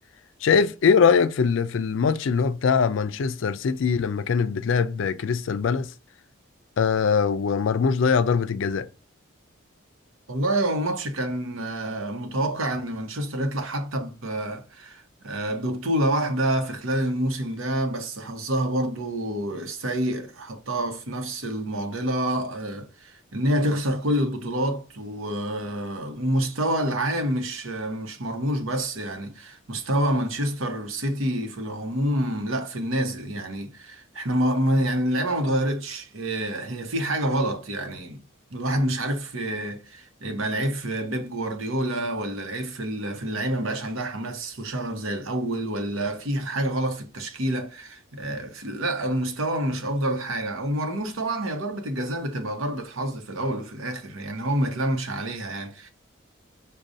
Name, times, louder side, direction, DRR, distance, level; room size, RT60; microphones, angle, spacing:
voice 1, 0.4-5.9 6.8-8.9, left 6 dB, 70° left, 0.4 m, -22 dB
voice 2, 10.3-38.2 38.5-55.9, right 1 dB, 80° right, 0.9 m, -27 dB
6.2 x 2.3 x 2.6 m
head